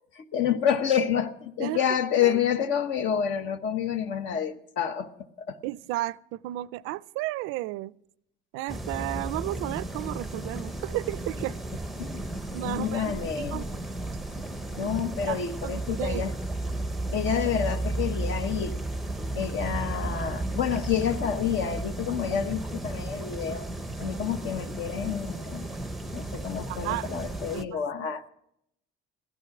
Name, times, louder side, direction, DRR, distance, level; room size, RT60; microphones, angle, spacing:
voice 1, 0.1-5.1 5.4-5.6 12.0-12.3 12.6-13.6 14.7-16.3 17.1-18.8 19.3-23.7 24.0-25.7 26.1-28.3, left 8 dB, 65° left, 1.1 m, -28 dB
voice 2, 5.6-7.9 8.5-11.6 12.5-13.6 14.8-14.9 15.2-16.2 26.7-27.2 27.5-27.8, right 17 dB, 85° right, 0.5 m, -33 dB
sound 1, 8.7-27.7, right 2 dB, ahead, 0.6 m, -34 dB
sound 2, 20.7-25.4, left 1 dB, 85° left, 1.9 m, -50 dB
16.0 x 12.5 x 5.9 m
cardioid pair, 170°, 21 cm